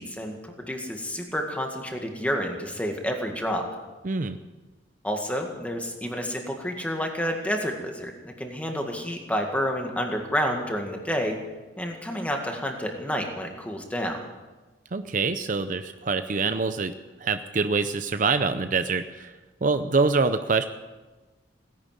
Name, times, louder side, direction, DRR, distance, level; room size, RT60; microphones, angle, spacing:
voice 1, 0.0-3.7 5.0-11.4 11.8-14.2, equal, 5° left, 2 dB, 1.9 m, -29 dB
voice 2, 4.0-4.4 14.9-16.9 17.2-19.3 19.6-20.7, right 4 dB, 45° right, 10 dB, 0.6 m, -25 dB
17.5 x 10.5 x 7.6 m, 1.2 s
head